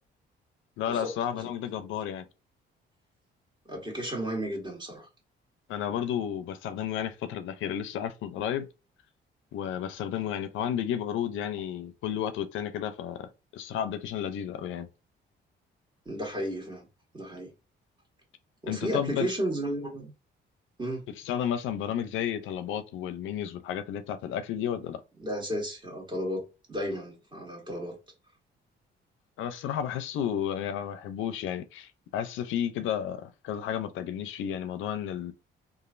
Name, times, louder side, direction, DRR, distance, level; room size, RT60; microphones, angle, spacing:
voice 1, 0.8-2.3 5.7-8.7 9.5-14.9 18.7-19.3 21.2-25.0 29.4-35.3, left 9 dB, 80° left, 0.4 m, -32 dB
voice 2, 3.6-5.1 16.0-16.8 17.1-17.5 18.6-20.1 20.8-21.1 25.2-26.4 26.7-28.0, equal, 20° right, 1.6 m, -33 dB
3.0 x 2.4 x 2.4 m
cardioid pair, 90°, 20 cm